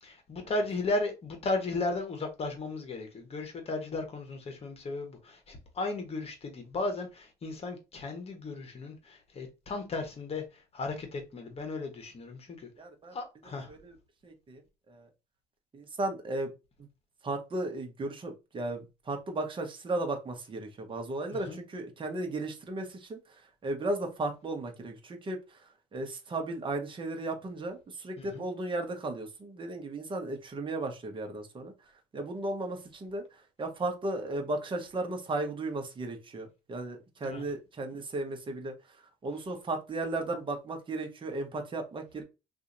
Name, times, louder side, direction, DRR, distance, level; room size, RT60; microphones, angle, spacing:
voice 1, 0.0-12.7 13.1-13.7 21.3-21.6 28.2-28.4 37.2-37.4, left 2 dB, 35° left, 1.2 m, -35 dB
voice 2, 12.8-13.1 13.7-13.9 14.2-14.6 14.9-15.1 15.7-16.5 17.2-25.4 25.9-31.7 32.1-33.2 33.6-38.7 39.2-42.2, right 2 dB, 30° right, 1.0 m, -35 dB
2.8 x 2.6 x 3.8 m
cardioid pair, 110°, 17 cm